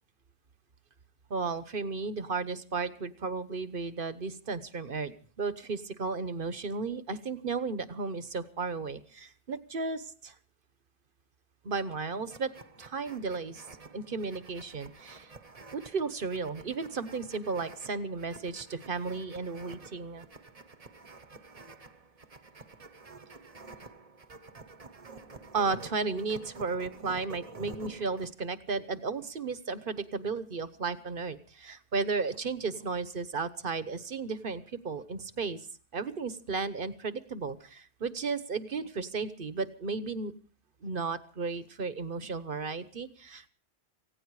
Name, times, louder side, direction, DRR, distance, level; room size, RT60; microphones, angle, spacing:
voice 1, 1.3-10.3 11.6-13.7 13.9-15.3 15.7-20.2 25.5-35.6 35.9-40.3 40.8-43.5, right 4 dB, 55° right, 13 dB, 1.2 m, -34 dB
sound 1, 12.3-28.3, right 4 dB, 35° right, 1.2 m, -50 dB
18.5 x 16.5 x 4.8 m, 0.41 s
omnidirectional pair, 1.1 m